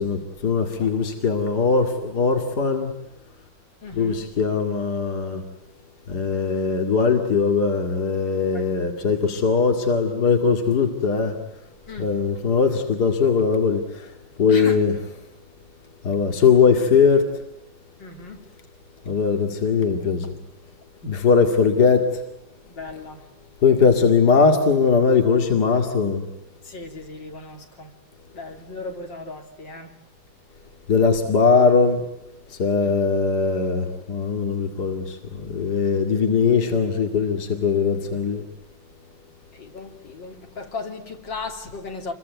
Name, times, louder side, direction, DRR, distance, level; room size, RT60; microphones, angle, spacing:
voice 1, 0.0-2.9 4.0-5.4 6.1-11.4 12.0-14.1 14.4-14.9 16.0-17.3 19.1-20.3 21.0-22.2 23.6-26.3 30.9-32.0 32.5-38.4, left 5 dB, 60° left, 2.7 m, -20 dB
voice 2, 3.8-4.4 8.5-8.7 11.9-12.2 14.5-14.9 18.0-18.5 22.6-23.3 26.6-28.0 28.3-30.0 32.8-33.0 39.5-42.1, left 3 dB, 75° left, 3.7 m, -36 dB
28.0 x 23.0 x 9.3 m
omnidirectional pair, 2.0 m